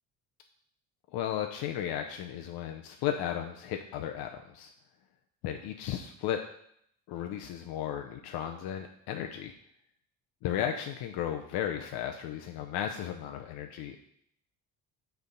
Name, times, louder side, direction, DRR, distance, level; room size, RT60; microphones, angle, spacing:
voice 1, 1.1-4.7 5.4-6.4 7.1-9.5 10.4-14.0, left 10 dB, 70° left, 4 dB, 0.7 m, -34 dB
7.9 x 3.4 x 5.3 m, 0.71 s
cardioid pair, 105°, 39 cm